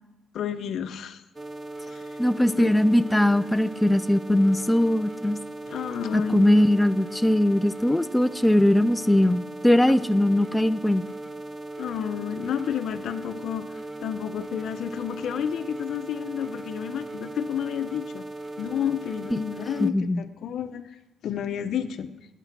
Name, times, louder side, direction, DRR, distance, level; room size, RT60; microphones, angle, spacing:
voice 1, 0.3-1.2 1.9-2.0 2.5-2.7 5.7-6.5 11.8-13.7 14.0-18.2 18.6-20.8 21.2-22.1, left 9 dB, 70° left, 10 dB, 0.8 m, -30 dB
sound 1, 1.4-19.9, right 2 dB, 30° right, 0.6 m, -38 dB
voice 2, 2.2-5.4 6.1-11.0 19.3-19.4 19.8-20.2, left 1 dB, 5° left, 12 dB, 0.4 m, -21 dB
12.5 x 9.1 x 5.9 m, 1.0 s
cardioid pair, 90°, 0 cm